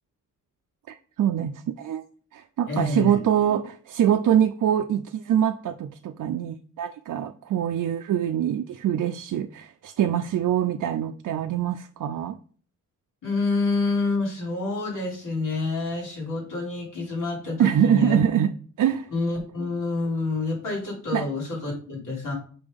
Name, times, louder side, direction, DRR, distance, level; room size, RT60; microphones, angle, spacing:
voice 1, 0.9-2.0 2.3-12.4 17.6-18.5 18.8-19.1 21.1-21.3, right 10 dB, 75° right, 0.5 m, -24 dB
voice 2, 2.7-3.2 13.2-18.2 19.1-22.3, left 3 dB, 90° left, 3.2 m, -27 dB
6.8 x 5.2 x 3.6 m
wide cardioid pair, 135°, 31 cm